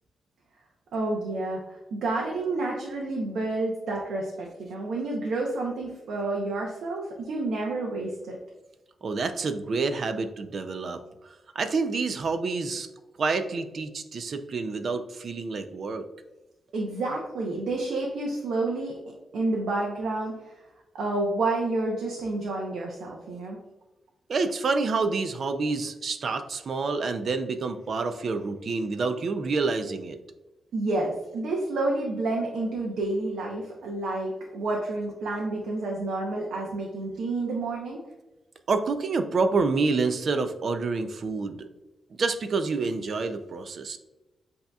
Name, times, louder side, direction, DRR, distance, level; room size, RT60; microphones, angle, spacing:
voice 1, 0.9-8.4 16.7-18.9 19.3-20.6 20.9-23.6 30.7-38.0, right 2 dB, 80° right, -2 dB, 0.7 m, -29 dB
voice 2, 9.0-11.0 11.6-12.9 13.2-16.1 24.3-30.2 38.7-41.7 42.2-44.0, right 4 dB, 45° right, 8 dB, 0.4 m, -28 dB
7.9 x 2.8 x 2.3 m, 1.0 s
wide cardioid pair, 160°, 0 cm